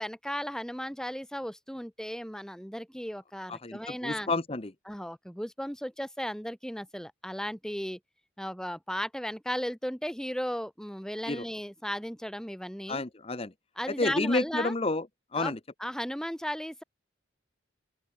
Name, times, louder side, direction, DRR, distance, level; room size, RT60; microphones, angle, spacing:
voice 1, 0.0-4.3 4.9-8.0 8.4-13.0 13.8-14.7 15.4-16.8, equal, 5° left, 5.1 m, -35 dB
voice 2, 3.5-4.7 11.2-11.4 12.9-13.5 14.0-15.0 15.3-15.6, left 2 dB, 30° left, 0.9 m, -30 dB
open air
head